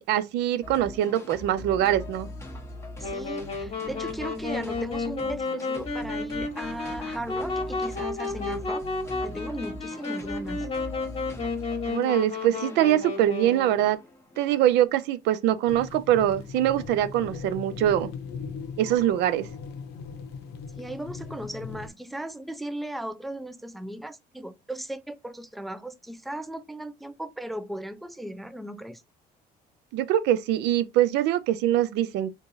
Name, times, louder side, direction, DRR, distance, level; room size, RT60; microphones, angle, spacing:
voice 1, 0.0-2.3 11.9-14.0 14.4-18.1 18.8-19.5 29.9-32.3, right 12 dB, 85° right, 0.4 m, -23 dB
sound 1, 0.6-14.9, left 1 dB, 15° left, 0.9 m, -42 dB
Wind instrument woodwind instrument, 3.0-13.9, left 3 dB, 35° left, 1.2 m, -32 dB
voice 2, 3.0-8.9 9.2-10.7 20.8-29.0, right 1 dB, ahead, 0.3 m, -37 dB
sound 2, 15.7-21.9, left 5 dB, 85° left, 0.6 m, -39 dB
3.6 x 3.0 x 2.6 m
cardioid pair, 110°, 17 cm